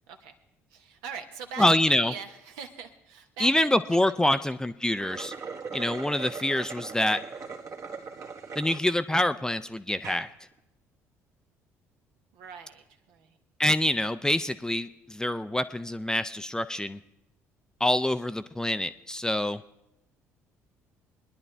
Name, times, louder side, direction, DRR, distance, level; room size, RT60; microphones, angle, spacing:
voice 1, 0.7-3.5 4.3-4.4 5.8-5.9 12.3-13.4, right 6 dB, 70° right, 5 dB, 1.1 m, -42 dB
voice 2, 1.6-2.1 3.4-5.3 5.7-7.2 8.6-10.3 13.6-17.0 17.8-19.6, left 1 dB, 10° left, 12 dB, 0.5 m, -26 dB
sound 1, 4.9-8.8 9.3-9.4 9.9-10.3, right 5 dB, 50° right, 1.5 m, -39 dB
22.0 x 10.5 x 3.4 m, 0.84 s
figure-of-eight pair, 55°, 8 cm